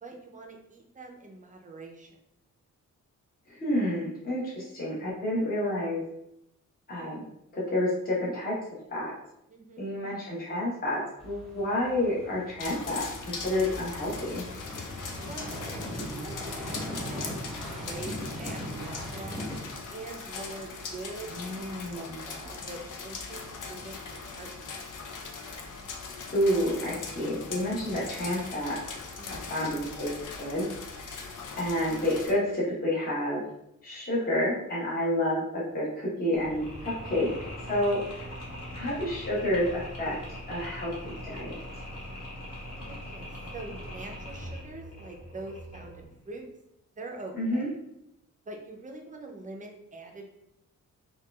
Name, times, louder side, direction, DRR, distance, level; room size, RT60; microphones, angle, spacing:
voice 1, 0.0-2.2 9.5-9.9 15.2-17.3 17.6-19.5 19.9-21.4 21.9-24.7 29.2-29.5 34.9-35.2 42.9-46.5 47.0-47.7 48.5-50.3, right 2 dB, 25° right, 2 dB, 0.5 m, -44 dB
voice 2, 3.5-6.0 6.9-7.2 7.5-8.5 8.9-9.1 9.8-14.4 21.3-22.2 26.3-28.8 29.3-30.1 30.4-30.7 31.0-31.2 31.6-33.4 33.8-37.3 37.7-38.2 38.7-40.2 40.5-40.9 41.2-41.6 47.3-47.7, left 1 dB, 30° left, -6 dB, 0.9 m, -29 dB
sound 1, 11.2-19.6, equal, ahead, 1.2 m, -39 dB
sound 2, 12.6-32.3, left 4 dB, 70° left, 0.5 m, -40 dB
Mechanisms, 36.3-46.1, left 1 dB, 55° left, 1.0 m, -41 dB
4.4 x 2.3 x 2.3 m, 0.82 s
wide cardioid pair, 155°, 32 cm